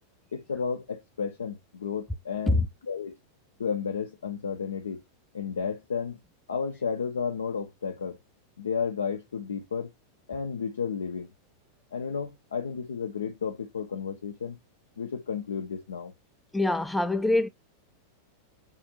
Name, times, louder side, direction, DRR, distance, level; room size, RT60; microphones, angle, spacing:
voice 1, 0.3-3.2 3.6-5.0 5.3-6.2 6.5-8.2 8.6-9.9 10.3-11.3 11.9-14.6 15.0-16.1, left 6 dB, 70° left, 0.4 m, -32 dB
voice 2, 16.5-17.5, left 2 dB, 5° left, 0.3 m, -24 dB
3.6 x 2.4 x 2.8 m
figure-of-eight pair, 90°, 0 cm